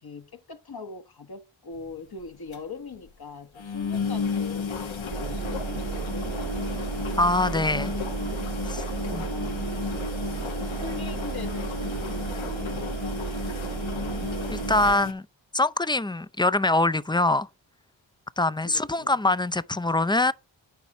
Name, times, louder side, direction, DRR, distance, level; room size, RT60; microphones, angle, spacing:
voice 1, 0.0-7.2 9.1-10.2 10.5-13.6 18.6-19.1, left 4 dB, 50° left, 1.1 m, -42 dB
sound 1, 1.7-1.9 2.2-2.3 2.5-2.6 2.9-3.1 3.6-15.1, left 5 dB, 80° left, 1.4 m, -33 dB
sound 2, 5.1-14.9, right 6 dB, 70° right, 1.2 m, -33 dB
voice 2, 7.2-7.9 8.7-8.8 9.1-9.2 14.5-15.3 15.5-17.5 18.4-20.3, left 2 dB, 10° left, 0.4 m, -23 dB
9.3 x 4.2 x 5.9 m
cardioid pair, 45°, 46 cm